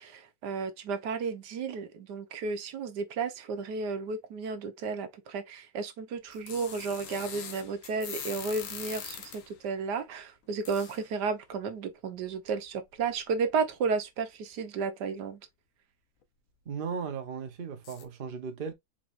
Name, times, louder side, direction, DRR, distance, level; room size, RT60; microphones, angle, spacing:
voice 1, 0.0-15.4, right 5 dB, 85° right, 1.5 m, -33 dB
sound 1, 6.3-9.6 10.6-11.1 12.3-12.4 13.0-13.1 13.5-13.6 17.8-18.0, left 7 dB, 60° left, 1.1 m, -42 dB
voice 2, 16.7-18.7, right 6 dB, 40° right, 0.9 m, -36 dB
4.5 x 4.4 x 2.5 m
omnidirectional pair, 1.7 m